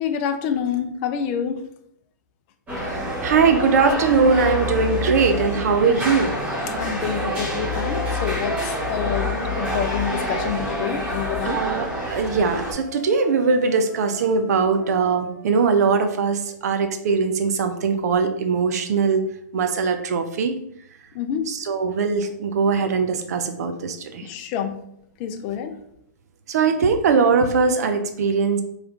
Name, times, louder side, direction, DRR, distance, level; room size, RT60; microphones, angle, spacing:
voice 1, 0.0-1.7 6.7-11.7 21.1-21.5 24.2-24.8 25.2-25.8, left 8 dB, 35° left, 7 dB, 0.4 m, -27 dB
Wind instrument woodwind instrument, 2.7-5.2 5.8-10.5 11.1-16.5, left 3 dB, 15° left, 0.9 m, -42 dB
sound 1, 2.7-12.7, left 1 dB, 15° right, 1.3 m, -27 dB
voice 2, 2.8-6.5 11.5-19.2 19.5-20.5 21.5-24.3 26.5-28.6, right 5 dB, 60° right, 8 dB, 0.5 m, -21 dB
3.1 x 3.1 x 3.7 m, 0.72 s
hypercardioid pair, 140°, 10 cm